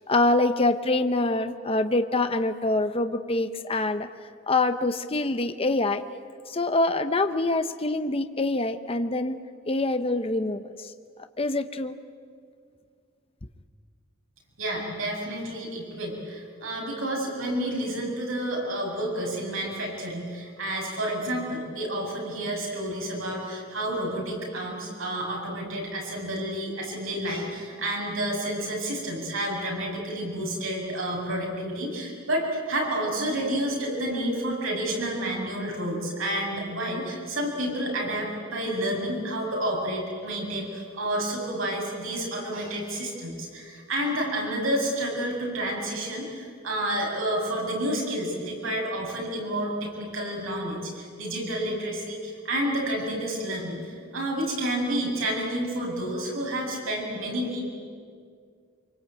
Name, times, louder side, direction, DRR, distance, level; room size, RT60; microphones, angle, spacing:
voice 1, 0.1-4.1 4.5-6.0 6.5-9.4 9.7-10.9 11.4-11.9, left 2 dB, 30° left, 9 dB, 0.9 m, -25 dB
voice 2, 14.6-57.6, right 1 dB, 80° right, -1 dB, 7.5 m, -30 dB
25.5 x 24.0 x 9.1 m, 2.1 s
head